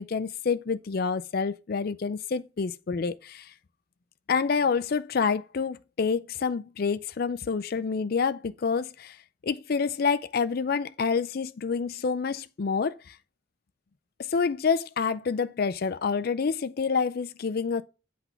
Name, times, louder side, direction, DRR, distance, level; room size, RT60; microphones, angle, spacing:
voice 1, 0.0-3.5 4.3-9.2 9.4-13.2 14.2-17.8, left 5 dB, 50° left, 0.4 m, -28 dB
8.0 x 3.6 x 5.7 m
head